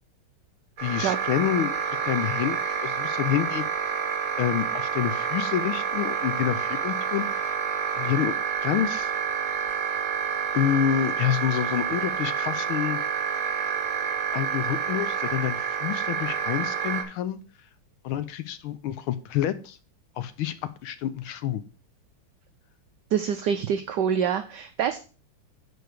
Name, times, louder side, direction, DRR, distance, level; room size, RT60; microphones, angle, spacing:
voice 1, 0.8-1.7 2.0-3.6 4.4-7.6 8.0-8.3 8.6-9.1 10.5-13.0 14.3-17.4 18.0-19.8 20.2-20.5 20.8-21.6, left 11 dB, 80° left, 12 dB, 1.6 m, -28 dB
sound 1, 0.8-17.0, right 7 dB, 45° right, 2.7 m, -28 dB
voice 2, 23.1-25.0, right 8 dB, 70° right, 7 dB, 1.1 m, -26 dB
9.3 x 4.3 x 6.5 m, 0.37 s
omnidirectional pair, 2.4 m